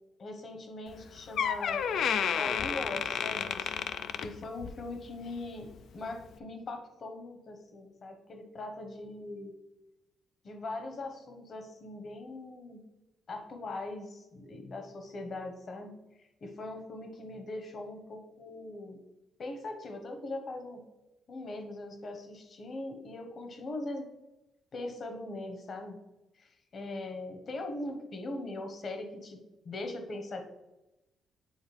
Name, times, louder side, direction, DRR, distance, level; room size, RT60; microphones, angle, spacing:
voice 1, 0.2-1.8 2.3-3.8 4.2-9.6 10.4-12.8 13.3-19.0 19.4-20.8 21.3-24.1 24.7-26.0 26.3-30.5, left 2 dB, 50° left, 5 dB, 1.2 m, -41 dB
Door, 0.9-1.0 1.4-4.9 5.2-5.5 6.2-6.3, left 7 dB, 70° left, 0.4 m, -31 dB
9.5 x 4.0 x 3.4 m, 0.98 s
cardioid pair, 90°, 0 cm